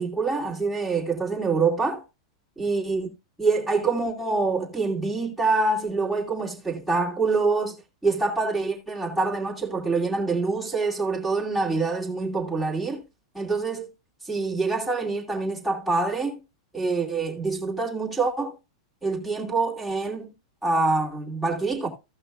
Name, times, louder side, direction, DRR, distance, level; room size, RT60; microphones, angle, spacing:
voice 1, 0.0-2.0 2.6-3.1 3.4-7.8 8.0-13.0 13.3-13.9 14.2-16.4 16.7-18.5 19.0-20.3 20.6-21.9, right 3 dB, ahead, 2.6 m, -25 dB
16.0 x 5.9 x 2.3 m
supercardioid pair, 140°, 3 cm